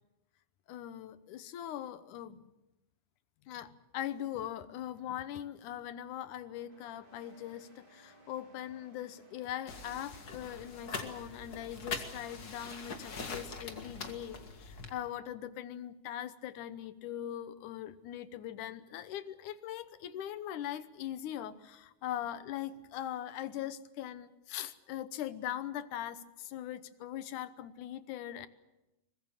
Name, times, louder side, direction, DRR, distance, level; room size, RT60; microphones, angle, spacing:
voice 1, 0.7-2.4 3.5-28.5, left 11 dB, 80° left, 14 dB, 2.5 m, -41 dB
sound 1, 6.6-11.7, right 1 dB, 15° right, 3.5 m, -62 dB
sound 2, 9.7-14.9, left 4 dB, 35° left, 1.9 m, -43 dB
23.5 x 21.0 x 7.3 m, 0.96 s
omnidirectional pair, 3.5 m